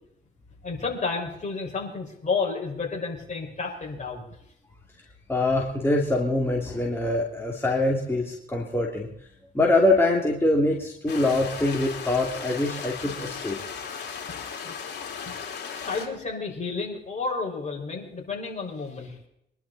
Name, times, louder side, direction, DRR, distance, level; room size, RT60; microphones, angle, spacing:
voice 1, 0.6-4.2 14.6-14.7 15.7-19.2, left 4 dB, 35° left, 0 dB, 5.6 m, -31 dB
voice 2, 5.3-9.1 9.5-13.6, left 2 dB, 10° left, -2 dB, 2.8 m, -24 dB
sound 1, 11.1-16.1, left 6 dB, 60° left, 4.4 m, -36 dB
24.5 x 11.5 x 4.2 m, 0.79 s
cardioid pair, 90°, 20 cm